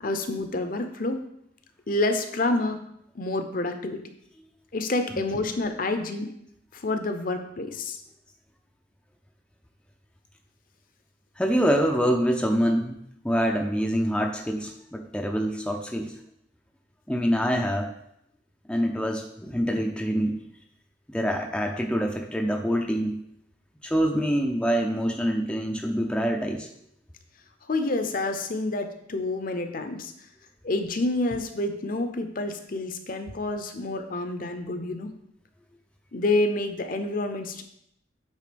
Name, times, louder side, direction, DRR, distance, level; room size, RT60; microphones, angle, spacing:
voice 1, 0.0-1.2 1.9-2.8 3.1-4.0 4.7-6.3 6.7-8.0 27.7-30.1 30.6-35.1 36.1-37.6, left 2 dB, 45° left, 7 dB, 0.6 m, -28 dB
voice 2, 11.4-13.0 13.2-16.1 17.1-17.9 18.7-20.4 21.1-23.2 23.8-26.7, equal, 5° left, 2 dB, 0.4 m, -25 dB
8.4 x 3.7 x 5.1 m, 0.75 s
head